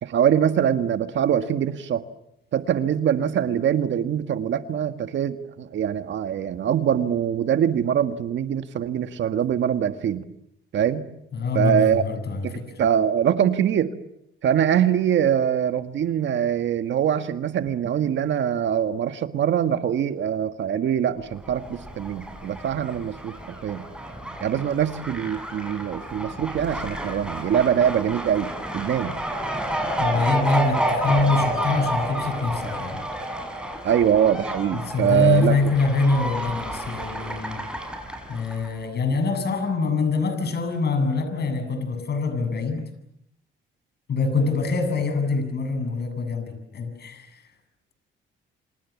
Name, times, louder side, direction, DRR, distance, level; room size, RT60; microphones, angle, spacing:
voice 1, 0.0-2.0 2.5-10.2 10.7-11.0 11.5-12.0 12.4-13.9 14.4-23.4 23.6-23.8 24.4-29.2 33.8-35.6, right 9 dB, 70° right, 9 dB, 1.7 m, -23 dB
voice 2, 11.3-12.7 30.0-33.0 34.9-37.6 38.3-42.8 44.1-47.3, left 3 dB, 55° left, 8 dB, 7.6 m, -24 dB
Fowl, 21.3-38.7, right 1 dB, 5° right, 7.3 m, -30 dB
29.0 x 27.0 x 7.3 m, 0.78 s
cardioid pair, 90°, 20 cm